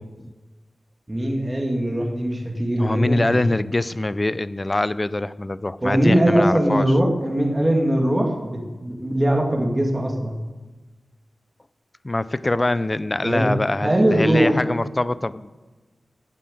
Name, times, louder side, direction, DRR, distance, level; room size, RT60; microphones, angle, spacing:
voice 1, 1.1-3.5 5.8-10.4 13.2-13.5 13.8-14.6, right 1 dB, 20° right, 0 dB, 2.1 m, -21 dB
voice 2, 2.8-6.9 12.0-15.5, left 2 dB, 25° left, 16 dB, 0.5 m, -23 dB
17.0 x 7.6 x 7.8 m, 1.2 s
wide cardioid pair, 95°, 0 cm